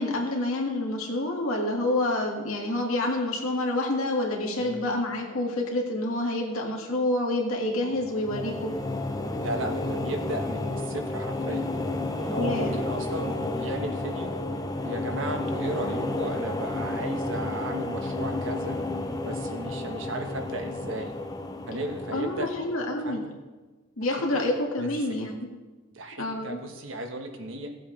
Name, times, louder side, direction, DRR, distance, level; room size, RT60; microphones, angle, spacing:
voice 1, 0.0-8.7 12.4-12.8 22.1-23.2 24.0-25.5 26.2-26.6, left 1 dB, 90° left, -1 dB, 1.9 m, -28 dB
voice 2, 4.6-4.9 9.4-11.7 12.2-14.3 14.8-18.8 19.2-21.1 21.7-22.5 23.0-23.3 24.1-24.9 25.9-27.7, right 1 dB, 65° right, 4 dB, 1.3 m, -35 dB
sound 1, 7.9-23.2, left 2 dB, 20° left, 0.6 m, -32 dB
16.5 x 7.7 x 3.2 m, 1.2 s
head